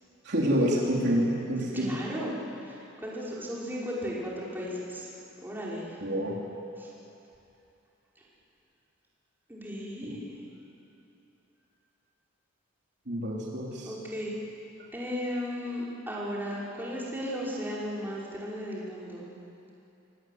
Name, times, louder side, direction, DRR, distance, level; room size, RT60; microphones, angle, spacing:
voice 1, 0.2-2.0 6.0-6.4 10.0-10.1 13.1-13.9, equal, 55° right, -3 dB, 3.4 m, -28 dB
voice 2, 1.7-5.1 5.4-6.0 6.8-6.9 9.5-10.4 13.8-14.3 14.9-19.3, equal, 10° right, -6 dB, 5.5 m, -35 dB
25.5 x 24.0 x 9.5 m, 2.8 s
head